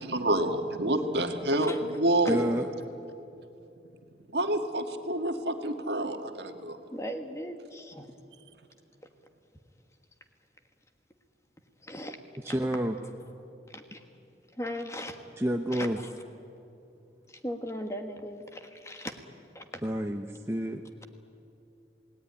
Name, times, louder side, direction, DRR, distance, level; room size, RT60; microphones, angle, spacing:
voice 1, 0.1-1.7 2.0-2.4 4.3-6.8, right 1 dB, 70° right, 6 dB, 1.7 m, -28 dB
voice 2, 2.3-2.7 12.4-13.0 15.4-16.0 19.8-20.8, equal, 15° right, 3 dB, 0.8 m, -29 dB
voice 3, 6.9-8.1 11.8-12.5 13.7-14.0 14.5-15.2 15.7-16.1 17.3-19.2 19.5-19.8, left 1 dB, 15° left, 6 dB, 1.5 m, -38 dB
28.0 x 18.5 x 9.8 m, 2.8 s
head